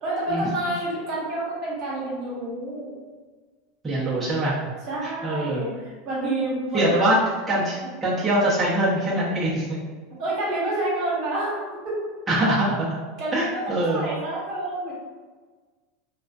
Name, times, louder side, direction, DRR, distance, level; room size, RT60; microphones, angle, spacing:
voice 1, 0.0-2.9 4.9-6.8 10.2-12.0 13.2-14.9, right 2 dB, 55° right, -6 dB, 1.1 m, -28 dB
voice 2, 3.8-4.7 5.0-5.6 6.7-7.2 7.5-9.8 12.3-13.0 13.3-14.1, right 1 dB, 15° right, -9 dB, 0.7 m, -23 dB
2.3 x 2.2 x 2.4 m, 1.4 s
hypercardioid pair, 95°, 0 cm